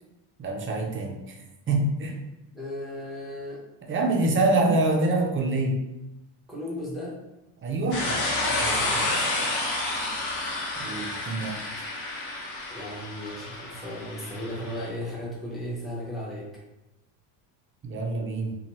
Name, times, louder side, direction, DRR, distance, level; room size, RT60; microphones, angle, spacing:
voice 1, 0.4-1.4 1.7-2.2 3.9-5.8 7.6-9.3 10.8-11.6 17.8-18.6, right 2 dB, 25° right, 1 dB, 0.4 m, -26 dB
voice 2, 2.5-3.6 3.9-4.5 6.5-7.2 9.4-9.9 12.7-16.5, left 1 dB, ahead, -7 dB, 0.8 m, -36 dB
sound 1, 7.9-14.9, left 2 dB, 70° left, 0.9 m, -30 dB
2.7 x 2.2 x 3.0 m, 0.97 s
supercardioid pair, 100°, 49 cm